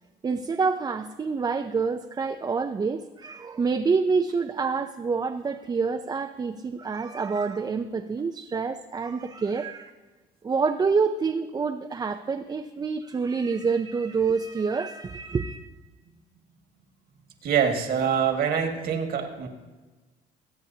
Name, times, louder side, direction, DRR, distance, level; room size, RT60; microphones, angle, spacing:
voice 1, 0.2-9.9 10.4-15.6, right 5 dB, 25° right, 5 dB, 0.5 m, -27 dB
voice 2, 17.4-19.5, right 7 dB, 65° right, 3 dB, 1.9 m, -25 dB
22.0 x 8.7 x 2.8 m, 1.2 s
cardioid pair, 110°, 17 cm